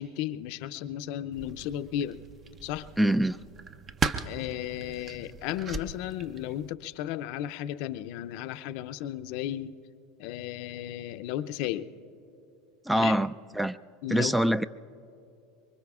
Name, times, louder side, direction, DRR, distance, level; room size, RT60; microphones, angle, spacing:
voice 1, 0.0-2.2 2.6-2.9 4.3-9.8 10.2-11.9 12.9-13.2 14.0-14.4, left 12 dB, 65° left, 13 dB, 0.5 m, -34 dB
sound 1, 1.3-6.7, right 4 dB, 35° right, 0.7 m, -37 dB
voice 2, 3.0-3.4 12.9-13.8 14.1-14.7, right 1 dB, 5° right, 16 dB, 0.3 m, -24 dB
25.5 x 23.5 x 2.4 m, 2.8 s
hypercardioid pair, 100°, 0 cm